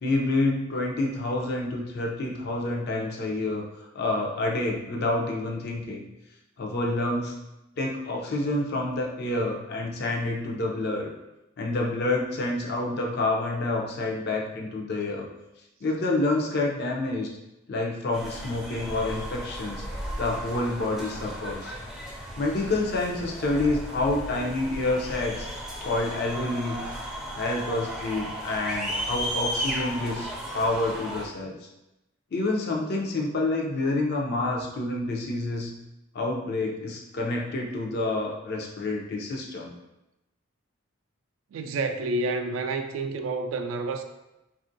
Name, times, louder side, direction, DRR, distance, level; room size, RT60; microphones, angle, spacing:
voice 1, 0.0-3.6 3.9-6.0 6.6-7.3 7.8-11.1 11.6-15.3 15.8-17.3 17.7-19.8 20.2-21.7 22.4-25.5 25.8-26.8 27.3-30.3 30.5-31.6 32.3-35.7 36.1-39.7, left 2 dB, 55° left, 0.5 m, -28 dB
sound 1, 18.1-31.3, equal, ahead, 0.4 m, -35 dB
voice 2, 41.5-44.0, right 3 dB, 80° right, 0.3 m, -29 dB
3.6 x 2.4 x 2.6 m
head